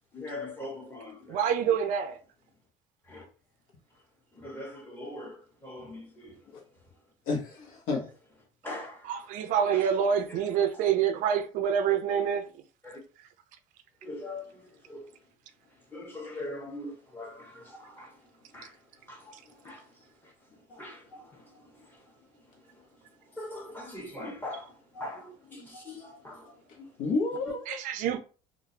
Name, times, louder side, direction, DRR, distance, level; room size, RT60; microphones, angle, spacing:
voice 1, 0.1-1.5 3.0-3.2 3.9-4.0 4.3-7.1 7.9-8.1 8.6-10.8 12.8-13.0 14.0-15.2 15.6-27.0, left 1 dB, 15° left, 1.3 m, -43 dB
voice 2, 1.3-2.2 9.1-12.4 27.7-28.2, right 8 dB, 60° right, 0.5 m, -26 dB
voice 3, 7.3-8.0 27.0-27.8, left 3 dB, 65° left, 1.1 m, -30 dB
3.7 x 2.5 x 2.8 m
cardioid pair, 135°, 15 cm